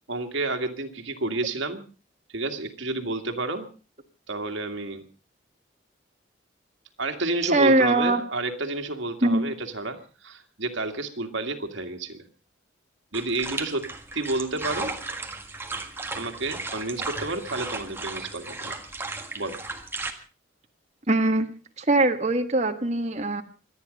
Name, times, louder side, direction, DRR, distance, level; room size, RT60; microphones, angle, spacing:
voice 1, 0.1-1.8 2.3-3.7 4.3-5.0 7.0-12.3 13.1-14.9 16.1-18.7 19.4-19.6, right 2 dB, 75° right, 5 dB, 2.2 m, -30 dB
voice 2, 7.5-8.2 9.2-9.5 21.1-21.5 21.8-23.4, right 2 dB, 35° right, 5 dB, 1.5 m, -21 dB
sound 1, 13.1-20.1, right 3 dB, 10° right, 1.6 m, -35 dB
25.0 x 9.8 x 5.3 m, 0.37 s
head